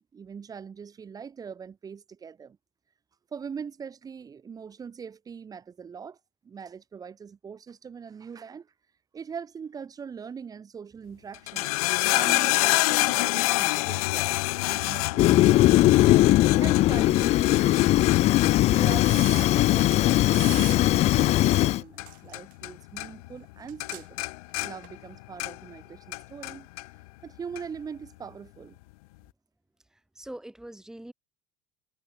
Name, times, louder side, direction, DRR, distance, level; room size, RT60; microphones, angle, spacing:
voice 1, 0.0-2.6 3.3-6.2 6.4-8.7 9.1-11.7 12.1-14.4 14.7-16.1 16.6-18.1 18.7-24.2 24.6-26.7 27.2-28.8, right 6 dB, 20° right, 7.8 m, -41 dB
sound 1, 11.3-22.7 23.0-23.5 23.8-25.8 26.1-26.9 27.6-27.7, left 24 dB, 85° left, 4.8 m, -28 dB
Fire, 15.2-21.8, left 16 dB, 35° left, 0.6 m, -20 dB
sound 2, 19.0-20.0 20.3-20.8 22.0-22.5 23.7-24.0 24.8-24.9, right 19 dB, 50° right, 3.9 m, -40 dB
voice 2, 29.9-31.1, right 1 dB, 5° right, 7.7 m, -43 dB
cardioid pair, 165°, 19 cm